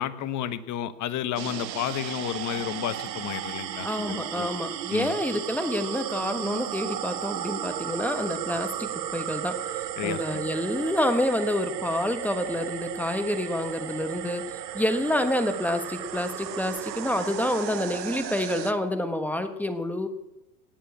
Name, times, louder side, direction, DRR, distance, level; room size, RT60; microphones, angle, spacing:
voice 1, 0.0-4.5 4.9-5.1 10.0-10.5, left 11 dB, 35° left, 13 dB, 1.2 m, -32 dB
sound 1, 1.4-18.7, right 12 dB, 90° right, 1.2 m, -34 dB
voice 2, 3.8-14.5 14.7-20.1, left 1 dB, 5° left, 8 dB, 1.3 m, -28 dB
18.0 x 7.5 x 8.6 m, 0.98 s
hypercardioid pair, 110°, 49 cm